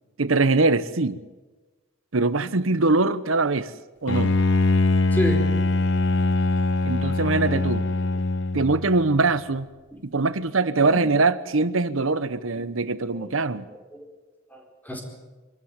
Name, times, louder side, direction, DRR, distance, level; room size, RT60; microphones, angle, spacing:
voice 1, 0.2-1.2 2.1-3.7 4.0-4.4 6.8-7.8 8.5-9.7 10.0-13.7, right 3 dB, 85° right, 14 dB, 1.0 m, -22 dB
Bowed string instrument, 4.1-9.0, left 2 dB, 60° left, 0.8 m, -22 dB
voice 2, 5.1-5.5 9.9-10.0 10.9-11.0 12.5-12.6 13.1-13.3 13.7-14.1 14.5-15.0, equal, 10° left, 2 dB, 4.4 m, -30 dB
25.5 x 13.5 x 9.7 m, 1.2 s
head